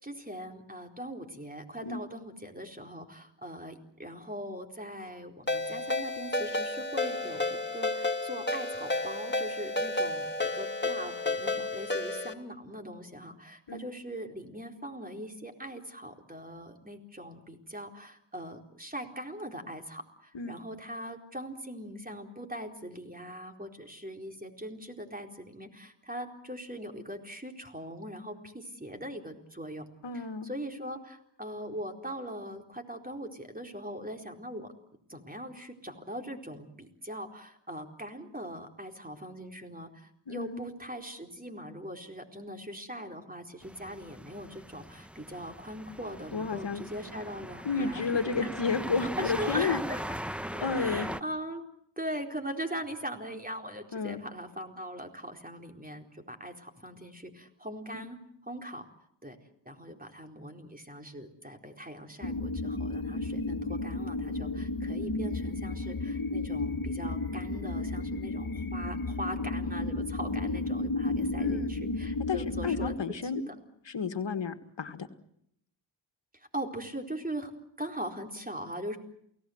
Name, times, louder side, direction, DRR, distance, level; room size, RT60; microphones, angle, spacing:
voice 1, 0.0-29.9 30.1-34.7 35.1-48.5 49.2-50.2 50.6-51.6 52.0-58.2 58.5-58.9 59.2-59.4 59.7-73.5 76.3-77.5 77.8-79.0, equal, 20° right, 4 dB, 4.2 m, -41 dB
Ringtone, 5.5-12.3, left 2 dB, 25° left, 3.2 m, -31 dB
voice 2, 30.0-30.5 40.3-40.6 46.3-46.8 47.6-49.8 50.6-51.1 53.9-54.2 57.9-58.0 71.4-71.7 72.3-73.4 73.9-75.1, left 5 dB, 70° left, 8 dB, 1.9 m, -31 dB
sound 1, 43.6-51.2, equal, 5° right, 1.0 m, -39 dB
sound 2, 62.2-73.0, left 2 dB, 50° left, 2.4 m, -33 dB
29.0 x 18.0 x 8.0 m, 0.73 s
cardioid pair, 50°, 45 cm